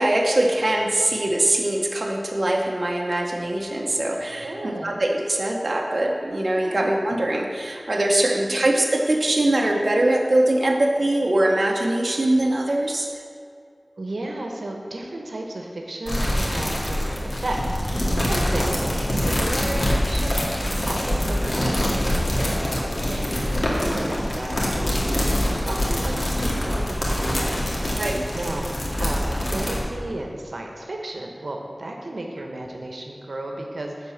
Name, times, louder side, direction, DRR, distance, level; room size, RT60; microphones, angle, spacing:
voice 1, 0.0-13.1 25.0-25.1 28.0-28.3, right 1 dB, 55° right, 0 dB, 0.9 m, -22 dB
voice 2, 4.1-5.0 6.5-6.8 8.4-8.6 14.0-27.8 28.3-28.7 29.0-34.1, right 1 dB, 90° right, 1 dB, 1.0 m, -33 dB
sound 1, 16.1-29.8, equal, 65° left, 2.0 m, -24 dB
10.5 x 4.2 x 7.2 m, 2.4 s
wide cardioid pair, 60°, 0 cm